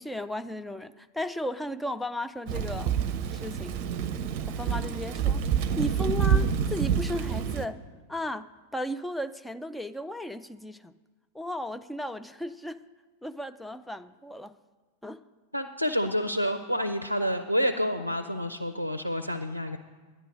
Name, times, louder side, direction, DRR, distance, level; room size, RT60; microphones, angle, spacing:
voice 1, 0.0-3.0 3.3-3.8 4.5-5.4 5.8-7.8 8.1-10.9 11.3-12.8 13.2-14.5 15.0-15.2, left 1 dB, 5° left, 10 dB, 0.4 m, -35 dB
Thunder / Rain, 2.5-7.7, right 7 dB, 45° right, 0.6 m, -27 dB
voice 2, 15.5-19.8, equal, 90° right, 10 dB, 0.5 m, -28 dB
11.0 x 10.0 x 5.2 m, 1.4 s
figure-of-eight pair, 90°, 0 cm